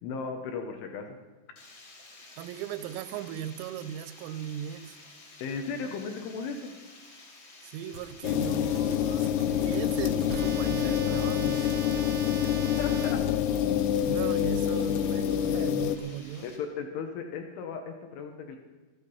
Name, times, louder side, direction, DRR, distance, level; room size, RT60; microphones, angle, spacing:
voice 1, 0.0-1.2 5.4-6.8 12.8-13.2 16.4-18.6, left 5 dB, 75° left, 3.2 m, -36 dB
Water, 1.6-16.6, left 2 dB, 40° left, 1.9 m, -52 dB
voice 2, 2.4-5.0 7.6-11.7 14.0-16.5, right 10 dB, 90° right, 3.4 m, -38 dB
sound 1, 7.9-13.1, right 5 dB, 65° right, 1.6 m, -41 dB
sound 2, 8.2-16.0, left 10 dB, 90° left, 3.5 m, -27 dB
15.0 x 12.5 x 5.5 m
omnidirectional pair, 5.9 m